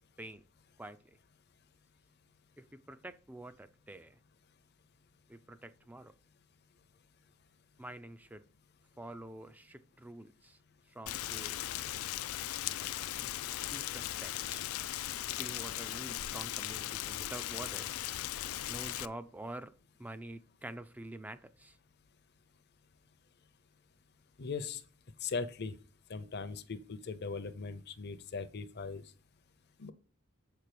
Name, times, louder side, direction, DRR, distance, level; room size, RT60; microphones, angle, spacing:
voice 1, 0.8-1.2 2.6-4.2 5.3-6.1 7.8-8.4 9.0-10.6 10.9-11.9 13.2-13.3 13.6-14.6 15.3-17.9 18.7-19.7 20.0-21.8, right 1 dB, 10° right, 0.4 m, -47 dB
Rain, 11.1-19.1, left 13 dB, 85° left, 0.4 m, -38 dB
voice 2, 24.4-24.8 25.2-25.7 26.1-29.0 29.8-29.9, left 4 dB, 50° left, 0.7 m, -39 dB
7.3 x 4.6 x 6.7 m
head